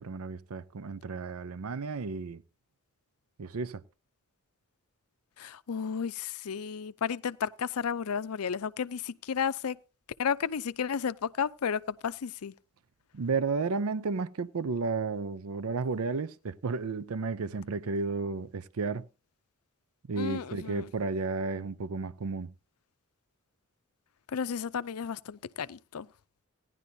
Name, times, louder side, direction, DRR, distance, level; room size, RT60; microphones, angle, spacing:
voice 1, 0.0-2.4 3.4-3.8 13.1-19.1 20.1-22.5, right 4 dB, 75° right, 0.6 m, -32 dB
voice 2, 5.4-9.8 10.2-12.5 20.2-20.9 24.3-26.1, left 7 dB, 85° left, 0.5 m, -33 dB
17.0 x 10.5 x 2.7 m
head